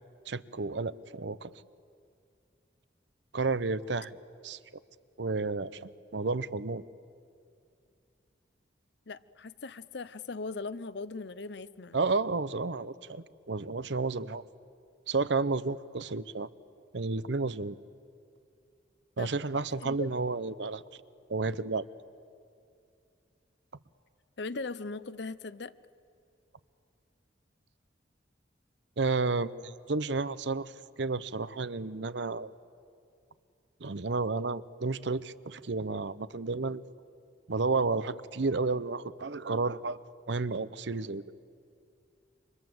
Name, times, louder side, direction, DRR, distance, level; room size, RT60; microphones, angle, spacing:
voice 1, 0.3-1.5 3.3-4.2 4.4-4.6 5.2-6.8 11.9-14.4 15.1-16.5 16.9-17.8 19.2-20.8 21.3-21.9 29.0-32.5 33.8-36.8 37.5-40.0 40.3-41.2, right 3 dB, 70° right, 16 dB, 0.7 m, -31 dB
voice 2, 9.1-12.0 19.2-19.4 19.8-20.1 24.4-25.7, left 3 dB, 65° left, 16 dB, 0.7 m, -39 dB
28.0 x 25.5 x 7.9 m, 2.4 s
head